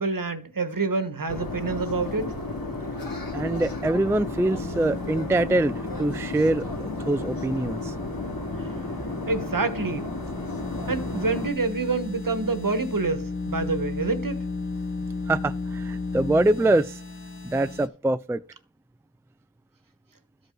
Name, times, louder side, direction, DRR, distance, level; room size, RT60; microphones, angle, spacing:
voice 1, 0.0-2.3 8.6-8.8 9.3-10.1 10.9-14.4, right 3 dB, 60° right, 1.3 m, -27 dB
sound 1, 1.3-11.5, left 2 dB, 70° left, 2.5 m, -33 dB
voice 2, 3.3-7.9 15.3-17.0 17.4-18.4, right 2 dB, 10° right, 0.3 m, -24 dB
sound 2, 4.0-17.9, left 3 dB, 35° left, 0.8 m, -35 dB
13.0 x 5.4 x 3.8 m
wide cardioid pair, 45°, 37 cm